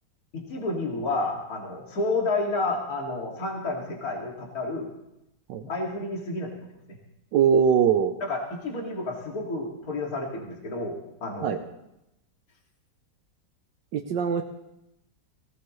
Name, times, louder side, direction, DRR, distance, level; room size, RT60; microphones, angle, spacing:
voice 1, 0.3-4.9 5.6-6.6 8.3-11.6, left 2 dB, 55° left, -1 dB, 2.8 m, -30 dB
voice 2, 7.3-8.1 11.4-11.6 13.9-14.4, right 7 dB, 80° right, 4 dB, 1.4 m, -21 dB
18.5 x 17.5 x 3.2 m, 0.87 s
omnidirectional pair, 1.9 m